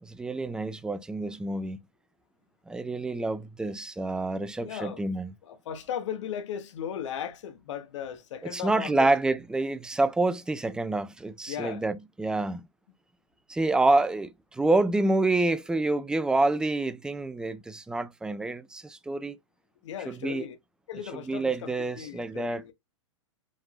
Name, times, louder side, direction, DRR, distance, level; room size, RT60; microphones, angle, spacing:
voice 1, 0.0-1.8 2.7-5.3 8.4-12.6 13.5-19.4 20.1-20.5 21.3-22.6, right 2 dB, 5° right, 0.4 m, -27 dB
voice 2, 4.6-5.0 5.4-9.1 11.5-11.9 19.8-20.6 20.9-22.7, left 9 dB, 70° left, 1.2 m, -37 dB
5.3 x 3.5 x 2.5 m
hypercardioid pair, 125°, 16 cm